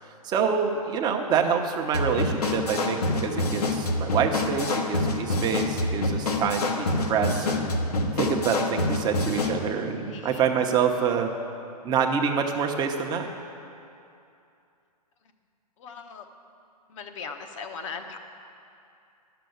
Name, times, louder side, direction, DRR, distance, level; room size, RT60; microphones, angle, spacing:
voice 1, 0.2-7.7 8.2-11.3 11.8-13.3, right 6 dB, 20° right, 3 dB, 0.9 m, -26 dB
sound 1, 1.9-9.6, left 2 dB, 75° left, 1.3 m, -27 dB
voice 2, 10.1-10.4 15.8-16.3 16.9-18.2, left 5 dB, 50° left, 5 dB, 1.1 m, -38 dB
10.5 x 6.9 x 7.9 m, 2.6 s
hypercardioid pair, 130°, 20 cm